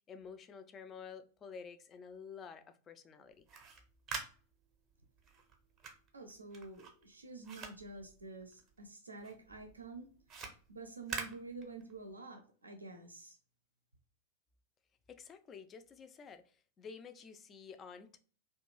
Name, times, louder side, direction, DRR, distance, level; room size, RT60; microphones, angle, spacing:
voice 1, 0.1-3.5 15.1-18.2, left 6 dB, 25° left, 0.3 m, -51 dB
sound 1, 3.3-8.9 9.2-12.1, right 5 dB, 30° right, 0.6 m, -47 dB
voice 2, 6.1-10.1 10.7-13.4, right 3 dB, 80° right, 0.4 m, -49 dB
2.4 x 2.2 x 3.0 m
figure-of-eight pair, 90°, 0 cm